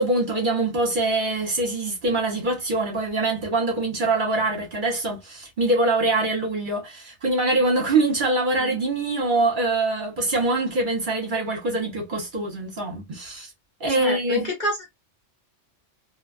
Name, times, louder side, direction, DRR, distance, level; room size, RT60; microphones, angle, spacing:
voice 1, 0.0-13.5 13.8-14.5, right 2 dB, 45° right, 1.0 m, -24 dB
voice 2, 14.0-14.9, equal, 45° left, 0.9 m, -27 dB
2.5 x 2.3 x 2.3 m
omnidirectional pair, 1.3 m